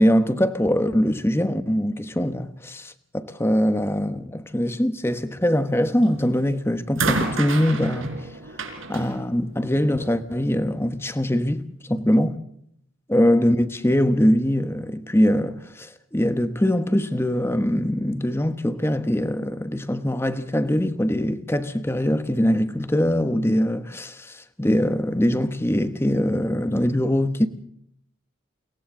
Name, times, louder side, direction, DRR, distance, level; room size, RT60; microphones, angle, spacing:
voice 1, 0.0-8.2 8.9-11.6 11.9-12.4 13.1-27.5, equal, 10° left, 1.0 m, -22 dB
sound 1, 6.0-6.4 7.0-10.2 11.2-11.3, right 3 dB, 75° right, 4.3 m, -30 dB
30.0 x 23.0 x 3.8 m
head